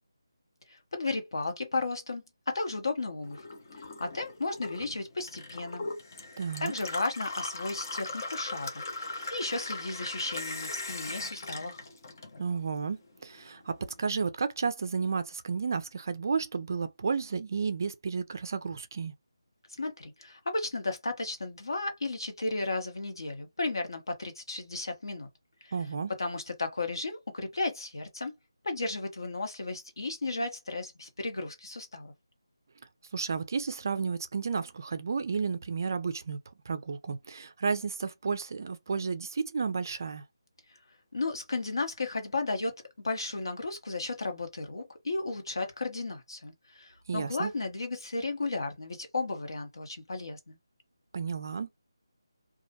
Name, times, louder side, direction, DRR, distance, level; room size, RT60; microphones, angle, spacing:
voice 1, 0.7-3.4 3.8-5.9 6.6-11.8 19.8-25.3 25.6-25.7 26.2-28.3 28.6-32.1 41.1-42.8 43.0-50.6, left 3 dB, 65° left, 0.9 m, -34 dB
Gurgling / Water tap faucet / Sink (filling or washing), 3.2-12.8 13.1-13.9, left 2 dB, 40° left, 0.7 m, -39 dB
voice 2, 6.4-6.7 12.4-19.1 25.7-26.1 33.1-36.4 36.7-40.2 47.1-47.5 51.1-51.7, right 5 dB, 45° right, 0.4 m, -32 dB
2.3 x 2.1 x 2.7 m
figure-of-eight pair, 160°, 2 cm